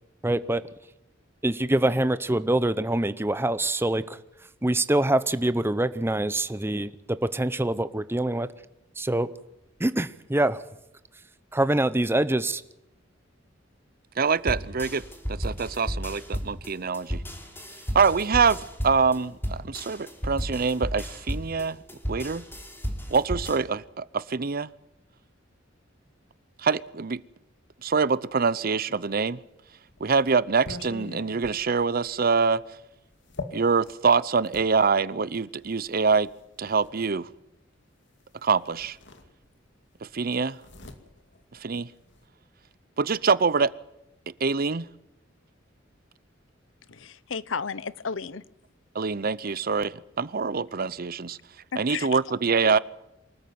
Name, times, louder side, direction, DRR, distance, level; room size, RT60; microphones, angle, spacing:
voice 1, 0.2-0.6 1.4-4.2 4.6-8.5 9.0-9.3 9.8-10.6 11.5-12.6, right 1 dB, 10° right, 14 dB, 0.7 m, -25 dB
voice 2, 14.2-15.0 15.3-17.2 17.9-21.8 22.1-22.4 23.1-24.7 26.6-27.2 27.8-29.4 30.0-32.6 33.5-36.3 36.6-37.3 38.4-39.0 40.0-40.6 41.6-41.9 43.0-43.7 44.4-44.8 48.9-51.4 51.8-52.8, right 5 dB, 50° right, 19 dB, 0.7 m, -25 dB
sound 1, 14.5-23.6, equal, 10° left, 3.1 m, -33 dB
sound 2, 29.4-34.7 35.6-37.0 38.2-38.3 38.6-39.8 40.0-42.3, left 3 dB, 65° left, 2.4 m, -43 dB
voice 3, 46.9-48.4 51.7-52.2 52.6-52.8, left 5 dB, 90° left, 18 dB, 0.9 m, -33 dB
24.5 x 14.0 x 9.4 m, 0.87 s
head